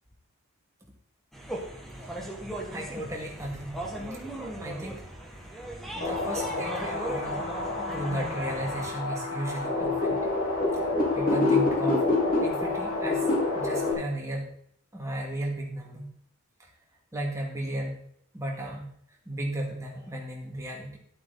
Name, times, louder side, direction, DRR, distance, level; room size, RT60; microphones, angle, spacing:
sound 1, 1.3-8.9, right 1 dB, ahead, 1.8 m, -38 dB
voice 1, 2.7-3.8 4.6-5.0 5.9-7.4 7.9-10.3 10.7-10.8 11.1-12.0 12.4-13.3 13.5-14.5 14.9-16.1 17.1-18.0 18.3-18.9 19.3-21.0, right 1 dB, 15° right, -1 dB, 2.4 m, -35 dB
sound 2, 6.0-13.9, left 2 dB, 40° left, 3.8 m, -27 dB
11.5 x 8.3 x 4.2 m, 0.67 s
head